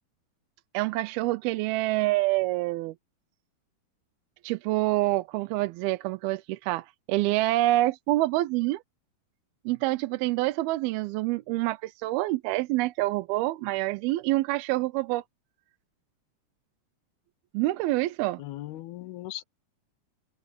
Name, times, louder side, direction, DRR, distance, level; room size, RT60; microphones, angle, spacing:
voice 1, 0.7-2.9 4.4-8.8 9.7-15.2 17.5-18.4, right 18 dB, 85° right, 2.5 m, -27 dB
voice 2, 18.4-19.4, left 15 dB, 80° left, 2.9 m, -38 dB
omnidirectional pair, 4.4 m